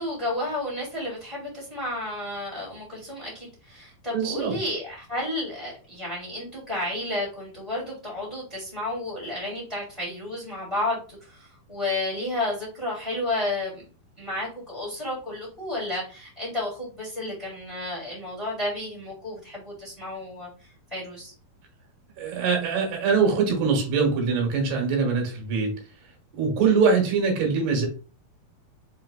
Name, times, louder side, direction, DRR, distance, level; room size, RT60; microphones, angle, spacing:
voice 1, 0.0-13.9 14.2-21.3, left 1 dB, 25° left, 0.8 m, -32 dB
voice 2, 4.1-4.5 22.2-25.7 26.3-27.9, right 5 dB, 90° right, 3.5 m, -23 dB
6.7 x 3.0 x 2.3 m
omnidirectional pair, 4.5 m